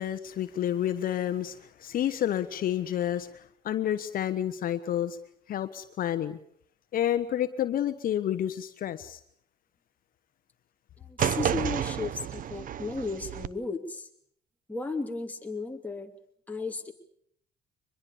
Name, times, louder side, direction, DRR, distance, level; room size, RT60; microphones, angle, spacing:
voice 1, 0.0-5.2 5.5-6.4 6.9-9.2, left 11 dB, 55° left, 10 dB, 1.2 m, -30 dB
voice 2, 11.0-14.1 14.7-16.1 16.5-16.9, left 3 dB, 10° left, 3 dB, 2.8 m, -34 dB
sound 1, 11.2-13.5, right 9 dB, 55° right, 1.0 m, -30 dB
24.0 x 21.5 x 7.1 m, 0.65 s
cardioid pair, 110°, 17 cm